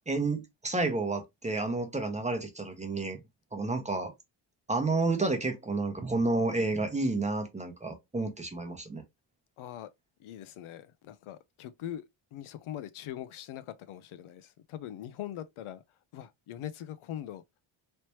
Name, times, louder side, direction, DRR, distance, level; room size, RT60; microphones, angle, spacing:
voice 1, 0.1-3.2 3.5-4.1 4.7-9.0, right 3 dB, 15° right, 0.8 m, -30 dB
voice 2, 9.6-9.9 10.2-12.0 12.3-15.8 16.1-17.4, left 11 dB, 75° left, 0.6 m, -42 dB
3.2 x 2.9 x 3.0 m
wide cardioid pair, 155°, 49 cm